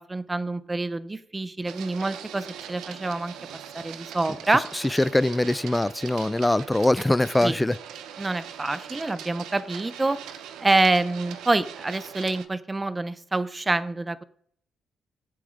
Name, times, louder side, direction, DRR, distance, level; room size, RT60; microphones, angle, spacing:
voice 1, 0.0-3.3 3.7-4.6 7.4-7.6 8.2-10.2 10.6-14.2, right 2 dB, 20° right, 0.8 m, -26 dB
Printer, 1.6-12.5, right 9 dB, 85° right, 1.0 m, -41 dB
voice 2, 4.9-7.8, left 1 dB, 10° left, 0.4 m, -22 dB
15.5 x 8.4 x 3.9 m
cardioid pair, 90°, 0 cm